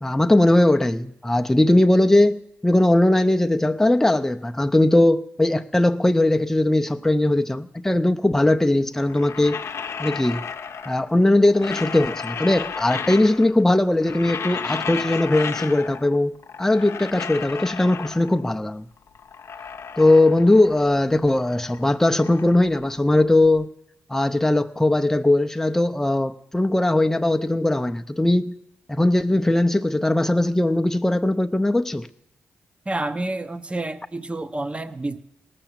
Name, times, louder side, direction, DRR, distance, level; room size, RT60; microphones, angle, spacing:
voice 1, 0.0-9.6 10.0-10.4 10.9-16.3 16.6-18.9 20.0-23.7 24.1-28.5 28.9-32.1, left 1 dB, 10° left, 0.6 m, -19 dB
sound 1, 9.0-11.1 11.4-13.6 13.9-16.2 16.4-18.5 19.0-21.0 21.3-23.5, left 6 dB, 65° left, 0.7 m, -33 dB
voice 2, 32.9-35.2, right 2 dB, 20° right, 0.8 m, -29 dB
18.0 x 6.9 x 7.3 m
cardioid pair, 55°, 5 cm